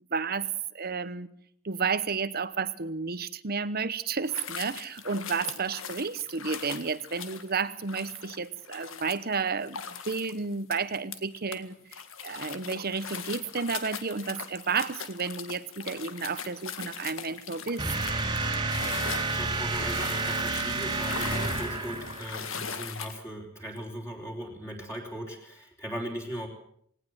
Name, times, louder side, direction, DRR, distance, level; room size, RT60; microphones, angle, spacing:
voice 1, 0.1-0.5 0.7-1.3 1.6-11.8 12.2-17.8, right 5 dB, 45° right, 16 dB, 1.0 m, -31 dB
sound 1, 4.3-11.6 11.9-23.2, left 6 dB, 70° left, 1.8 m, -40 dB
sound 2, 17.8-22.5, right 3 dB, 20° right, 2.3 m, -30 dB
voice 2, 19.2-26.5, equal, 15° left, 0 dB, 3.8 m, -38 dB
19.0 x 18.5 x 7.9 m, 0.66 s
head